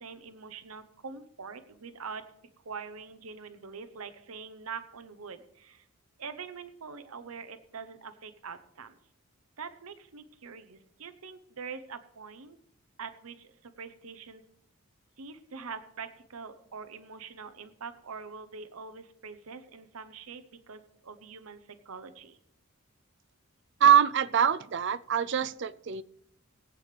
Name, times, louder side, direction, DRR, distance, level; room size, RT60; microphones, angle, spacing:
voice 1, 0.0-2.2 2.6-5.8 6.2-9.0 9.6-12.6 13.0-14.4 15.2-21.6 21.8-22.4, right 5 dB, 80° right, 9 dB, 0.8 m, -44 dB
voice 2, 23.8-26.0, right 8 dB, 55° right, 17 dB, 0.4 m, -23 dB
20.5 x 8.4 x 3.3 m, 0.73 s
head